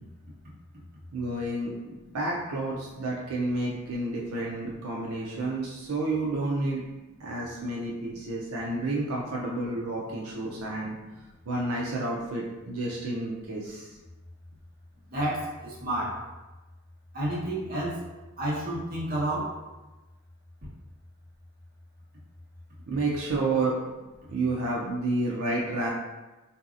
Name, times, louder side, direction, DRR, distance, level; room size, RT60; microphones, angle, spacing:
voice 1, 1.1-6.8 7.2-11.0 11.5-14.0 22.9-23.8 24.3-25.9, right 2 dB, 80° right, -3 dB, 0.5 m, -30 dB
voice 2, 15.1-16.2 17.1-18.0 18.4-19.6, right 1 dB, 45° right, -7 dB, 0.9 m, -30 dB
3.9 x 2.7 x 2.4 m, 1.1 s
head